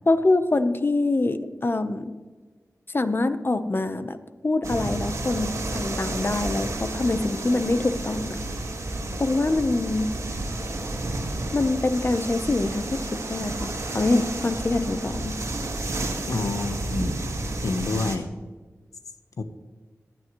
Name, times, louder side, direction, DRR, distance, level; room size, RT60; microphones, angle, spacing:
voice 1, 0.1-2.1 2.9-4.2 4.4-8.4 9.2-10.1 11.5-15.4, left 2 dB, 40° left, 10 dB, 0.8 m, -24 dB
sound 1, 4.6-18.2, right 2 dB, 65° right, 1.8 m, -31 dB
voice 2, 16.3-17.2 17.6-18.3 19.4-19.5, left 3 dB, 80° left, 8 dB, 0.9 m, -28 dB
19.0 x 10.5 x 3.1 m, 1.3 s
wide cardioid pair, 75°, 6 cm